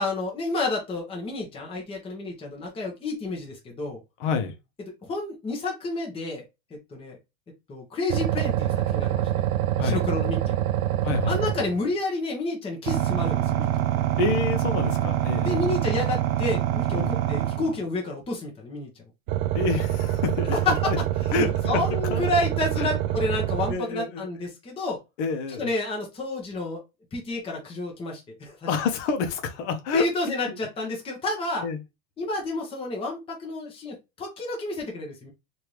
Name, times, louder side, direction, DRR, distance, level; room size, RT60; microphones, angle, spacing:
voice 1, 0.0-4.0 5.0-6.4 6.9-7.2 7.7-9.3 9.8-10.6 11.3-13.7 15.4-18.9 20.5-20.9 21.3-25.0 25.6-26.8 27.1-28.6 29.9-31.6 32.2-35.3, left 2 dB, 15° left, 0.9 m, -30 dB
voice 2, 4.2-4.6 9.7-10.0 11.0-11.6 14.2-15.6 16.9-17.2 19.5-20.6 20.8-21.0 21.3-21.8 22.1-22.2 22.8-22.9 23.7-24.3 25.2-25.7 28.7-30.6 31.6-31.8, left 4 dB, 60° left, 0.9 m, -28 dB
sound 1, 8.1-11.9 12.9-17.9 19.3-23.7, right 13 dB, 85° right, 0.6 m, -25 dB
3.3 x 2.7 x 3.0 m
supercardioid pair, 145°, 40 cm